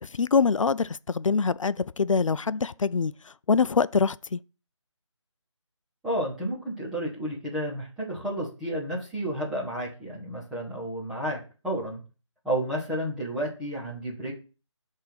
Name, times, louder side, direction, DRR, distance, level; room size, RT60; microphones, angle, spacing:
voice 1, 0.0-4.4, left 5 dB, 85° left, 0.4 m, -25 dB
voice 2, 6.0-12.0 12.4-14.3, right 1 dB, ahead, 0.7 m, -31 dB
6.6 x 3.5 x 5.8 m
figure-of-eight pair, 165°, 16 cm